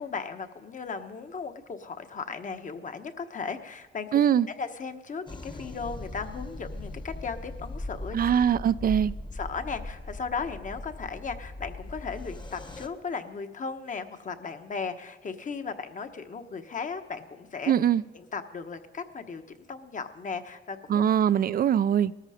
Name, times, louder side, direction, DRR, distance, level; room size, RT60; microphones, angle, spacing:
voice 1, 0.0-4.1 4.5-8.2 9.3-17.7 18.1-21.1, left 5 dB, 40° left, 1.2 m, -36 dB
voice 2, 4.1-4.5 8.1-9.1 17.7-18.0 20.9-22.1, right 9 dB, 45° right, 0.5 m, -22 dB
sound 1, 5.3-12.9, left 2 dB, 20° left, 1.2 m, -39 dB
19.0 x 13.5 x 5.1 m
cardioid pair, 90°, 20 cm